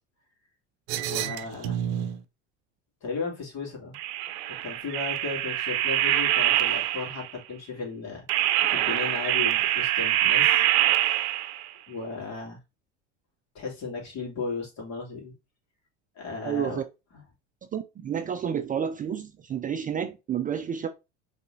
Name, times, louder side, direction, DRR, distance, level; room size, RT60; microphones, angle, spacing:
sound 1, 0.9-2.2 3.9-7.3 8.3-11.7, right 13 dB, 65° right, 0.7 m, -25 dB
voice 1, 1.1-1.8 3.0-4.0 4.6-8.3 8.7-10.6 11.9-12.6 13.5-15.3 16.1-16.8, left 4 dB, 50° left, 2.6 m, -35 dB
voice 2, 16.4-16.8 17.7-20.9, right 8 dB, 25° right, 0.5 m, -30 dB
5.4 x 3.4 x 2.7 m
hypercardioid pair, 75°, 35 cm